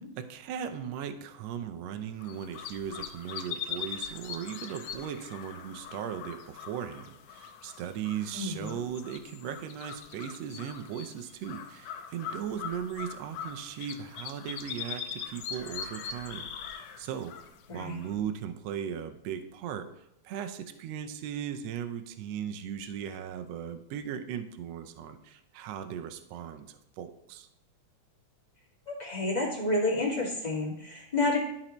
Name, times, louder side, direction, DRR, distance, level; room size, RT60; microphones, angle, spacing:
voice 1, 0.0-17.3 17.7-19.9 20.2-27.5, right 8 dB, 75° right, 8 dB, 1.6 m, -38 dB
sound 1, 2.2-18.3, left 7 dB, 90° left, 2.2 m, -42 dB
voice 2, 8.3-8.8 17.7-18.0 28.9-31.4, left 2 dB, 15° left, -6 dB, 1.8 m, -30 dB
13.0 x 4.4 x 3.0 m, 0.81 s
omnidirectional pair, 3.6 m